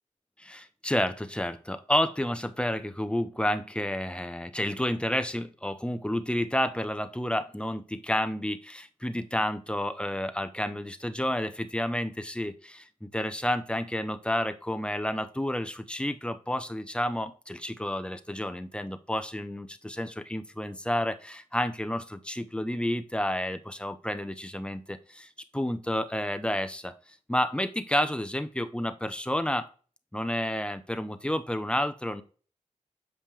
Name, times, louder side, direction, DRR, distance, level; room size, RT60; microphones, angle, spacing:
voice 1, 0.4-26.9 27.3-29.7 30.1-32.2, left 1 dB, 10° left, 10 dB, 0.7 m, -30 dB
7.4 x 5.2 x 3.3 m, 0.39 s
cardioid pair, 55°, 13 cm